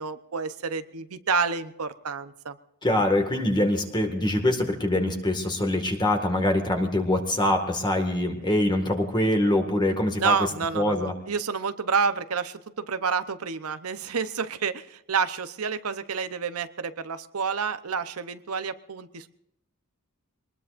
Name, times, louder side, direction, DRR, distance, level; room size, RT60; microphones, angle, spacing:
voice 1, 0.0-2.6 10.2-19.3, right 5 dB, 85° right, 11 dB, 0.9 m, -29 dB
voice 2, 2.8-10.4 10.7-11.1, left 1 dB, 20° left, 4 dB, 1.9 m, -24 dB
24.0 x 20.0 x 2.6 m, 0.80 s
head